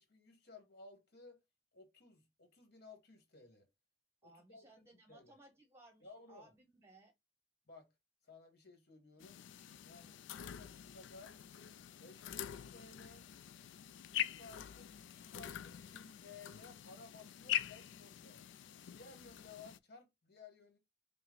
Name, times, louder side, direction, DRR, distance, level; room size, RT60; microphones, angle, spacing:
voice 1, 0.0-1.4 1.7-3.7 4.2-5.3 6.0-6.5 7.7-7.9 8.2-9.4 9.8-11.4 12.0-13.3 14.1-18.4 18.9-20.8, left 3 dB, 60° left, 1.4 m, -58 dB
voice 2, 4.2-7.1, right 2 dB, 15° right, 0.9 m, -62 dB
sound 1, 9.2-19.8, left 11 dB, 75° left, 0.3 m, -44 dB
5.5 x 2.1 x 3.8 m
head